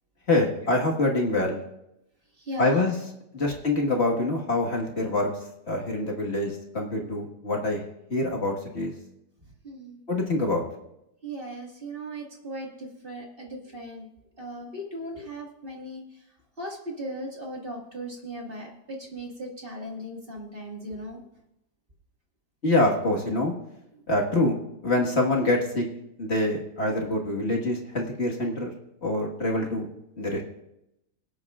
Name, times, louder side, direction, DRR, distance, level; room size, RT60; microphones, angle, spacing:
voice 1, 0.3-1.6 2.6-3.0 3.3-5.3 5.7-7.8 8.1-8.9 10.1-10.6 22.6-23.5 24.1-24.5 24.8-25.9 26.2-28.7 29.0-29.9 30.2-30.4, left 2 dB, 40° left, 0 dB, 1.8 m, -25 dB
voice 2, 2.4-2.9 7.0-7.1 9.6-10.0 11.2-14.1 14.4-16.0 16.6-21.2, right 1 dB, 35° right, -1 dB, 2.1 m, -37 dB
23.0 x 8.6 x 2.4 m, 0.84 s
omnidirectional pair, 1.8 m